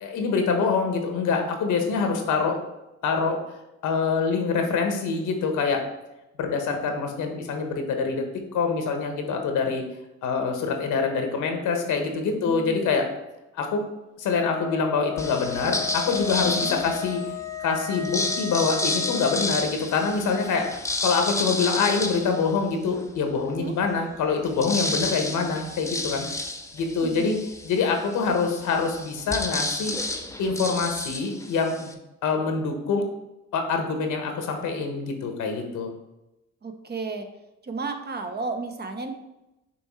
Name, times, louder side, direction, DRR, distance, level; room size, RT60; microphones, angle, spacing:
voice 1, 0.0-2.6 3.0-3.4 3.8-5.8 6.4-8.2 8.5-9.8 10.2-13.1 13.5-13.9 14.2-17.2 17.6-20.7 21.0-26.3 26.7-27.4 27.6-29.9 30.4-32.0 32.2-33.0 33.5-35.9, left 5 dB, 80° left, 4 dB, 1.2 m, -25 dB
voice 2, 12.2-12.8 16.4-16.8 23.5-23.8 27.0-27.5 36.6-37.3 37.6-39.1, right 4 dB, 35° right, 6 dB, 0.8 m, -33 dB
Wind instrument woodwind instrument, 14.3-19.6, left 10 dB, 55° left, 0.7 m, -34 dB
sound 1, 15.2-17.3 17.9-23.1 23.6-23.7 23.9-31.9, left 2 dB, 10° left, 0.6 m, -31 dB
6.1 x 3.5 x 4.7 m, 0.93 s
cardioid pair, 90°, 30 cm